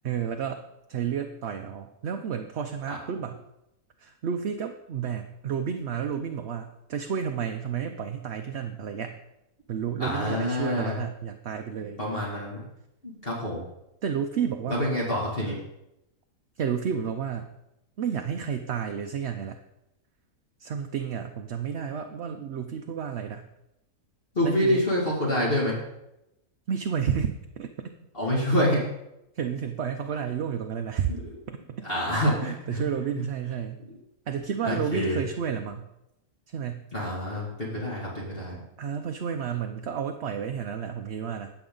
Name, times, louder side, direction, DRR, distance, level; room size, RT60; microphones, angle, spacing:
voice 1, 0.0-0.6 0.9-3.4 4.0-9.2 9.7-12.0 14.0-14.9 16.6-17.5 18.0-19.6 20.6-23.5 24.4-24.8 26.7-27.9 29.3-31.1 31.5-31.9 32.4-33.8 34.3-35.9 36.5-36.9 38.8-41.5, right 7 dB, 55° right, 5 dB, 0.8 m, -31 dB
voice 2, 10.0-11.0 12.0-12.6 13.0-13.6 14.7-15.6 24.3-25.8 28.1-28.8 31.8-32.8 33.2-33.3 34.6-35.2 36.9-38.6, left 1 dB, 40° left, -5 dB, 2.6 m, -27 dB
19.5 x 7.0 x 3.9 m, 0.87 s
omnidirectional pair, 1.6 m